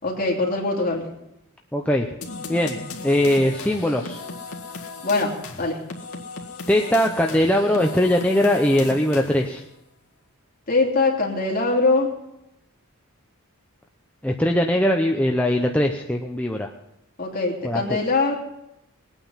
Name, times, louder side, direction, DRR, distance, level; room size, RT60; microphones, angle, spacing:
voice 1, 0.0-1.1 5.0-5.8 10.7-12.1 17.2-18.4, left 3 dB, 40° left, -2 dB, 3.0 m, -22 dB
voice 2, 1.7-2.1 2.5-2.8 3.0-4.2 6.7-9.6 14.2-16.7 17.6-18.0, left 1 dB, 5° left, 1 dB, 0.7 m, -21 dB
sound 1, 2.2-9.6, left 3 dB, 80° left, 1.8 m, -36 dB
20.5 x 9.1 x 5.6 m, 0.87 s
head